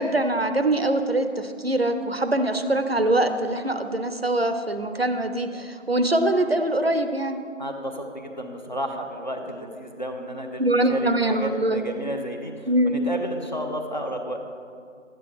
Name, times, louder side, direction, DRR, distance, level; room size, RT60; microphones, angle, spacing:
voice 1, 0.0-7.4 10.6-11.8 12.7-13.0, right 1 dB, 55° right, 8 dB, 0.6 m, -23 dB
voice 2, 7.6-10.6 10.9-14.4, equal, 35° left, 3 dB, 0.8 m, -32 dB
12.5 x 9.1 x 3.3 m, 2.2 s
figure-of-eight pair, 175°, 37 cm